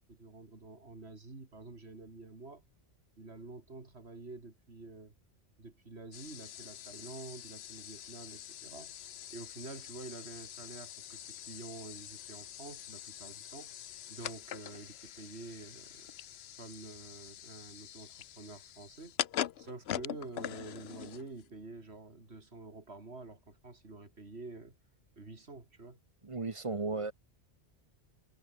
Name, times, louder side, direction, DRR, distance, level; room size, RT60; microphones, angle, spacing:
voice 1, 0.0-2.6 3.2-5.1 5.6-9.0 9.3-13.7 14.1-16.1 16.6-19.2 19.6-24.7 25.2-26.0, right 3 dB, 70° right, 3.3 m, -48 dB
sound 1, 6.1-21.5, left 11 dB, 70° left, 0.9 m, -44 dB
voice 2, 26.2-27.1, right 3 dB, 30° right, 1.1 m, -35 dB
omnidirectional pair, 1.1 m